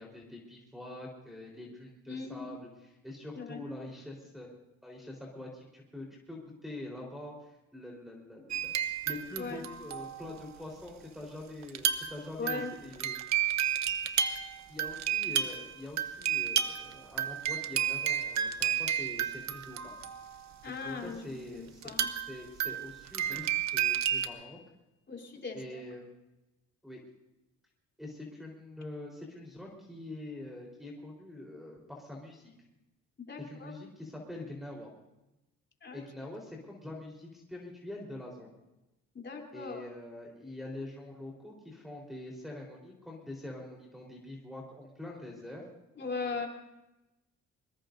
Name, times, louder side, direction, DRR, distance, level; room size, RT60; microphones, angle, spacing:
voice 1, 0.0-4.5 4.8-13.2 14.7-19.9 20.7-21.9 22.3-24.6 25.5-26.0 26.8-27.0 28.0-32.5 33.4-34.9 35.9-38.5 39.5-45.7, left 1 dB, ahead, -3 dB, 4.1 m, -45 dB
voice 2, 2.1-2.5 3.4-3.6 9.4-9.7 12.4-12.7 20.6-21.2 21.5-22.1 25.1-25.8 33.3-33.7 35.8-36.0 39.1-39.8 46.0-46.5, left 4 dB, 35° left, 1 dB, 3.6 m, -39 dB
sound 1, 8.5-9.4 9.6-10.4 11.6-12.2 12.5-20.4 21.8-24.3, right 9 dB, 65° right, 1.1 m, -31 dB
24.0 x 21.0 x 2.7 m, 0.98 s
cardioid pair, 90°, 30 cm